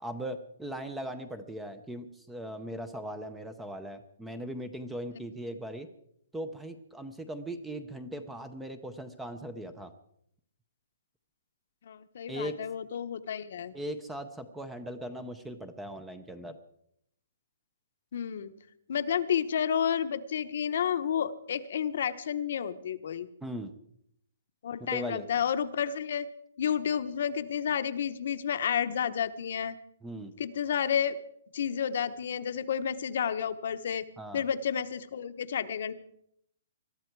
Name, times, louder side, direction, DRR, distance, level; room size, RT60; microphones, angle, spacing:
voice 1, 0.0-5.9 6.3-9.9 12.3-12.6 13.7-16.6 23.4-23.7 24.8-25.3 30.0-30.3 34.2-34.4, right 1 dB, 5° right, 11 dB, 0.6 m, -39 dB
voice 2, 11.8-13.7 18.1-18.5 18.9-23.3 24.6-26.3 26.6-29.8 30.4-31.2 31.5-34.0 34.3-35.9, left 8 dB, 45° left, 11 dB, 0.9 m, -31 dB
21.5 x 13.0 x 4.6 m, 0.71 s
hypercardioid pair, 175°, 0 cm